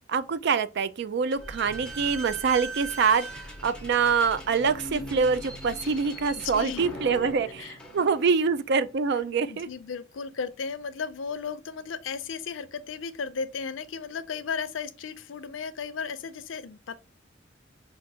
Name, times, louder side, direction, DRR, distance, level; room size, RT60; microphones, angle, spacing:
voice 1, 0.1-9.7, right 5 dB, 60° right, 0.4 m, -25 dB
Slam / Squeak, 1.3-8.6, right 1 dB, 5° left, 0.9 m, -40 dB
voice 2, 9.5-17.0, left 5 dB, 85° left, 0.5 m, -35 dB
5.7 x 2.5 x 2.7 m
head